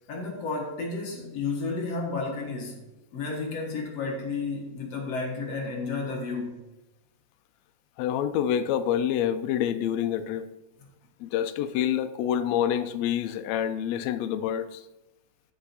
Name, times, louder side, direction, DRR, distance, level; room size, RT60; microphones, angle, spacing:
voice 1, 0.1-2.9 3.1-6.6, left 3 dB, 55° left, 2.4 m, -32 dB
voice 2, 8.0-10.5 11.2-14.8, left 10 dB, 75° left, 1.6 m, -27 dB
13.5 x 5.7 x 4.2 m
omnidirectional pair, 3.8 m